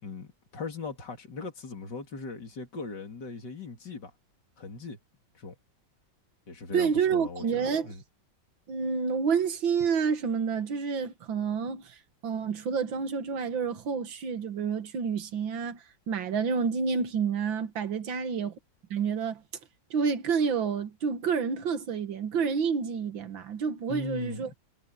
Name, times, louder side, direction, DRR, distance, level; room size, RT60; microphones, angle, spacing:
voice 1, 0.0-4.1 4.6-5.0 5.3-5.6 6.5-8.0 23.9-24.5, left 3 dB, 60° left, 3.8 m, -39 dB
voice 2, 6.7-7.9 8.7-12.0 12.2-15.8 16.1-18.6 18.9-19.4 19.9-24.5, right 6 dB, 75° right, 2.3 m, -29 dB
omnidirectional pair, 2.1 m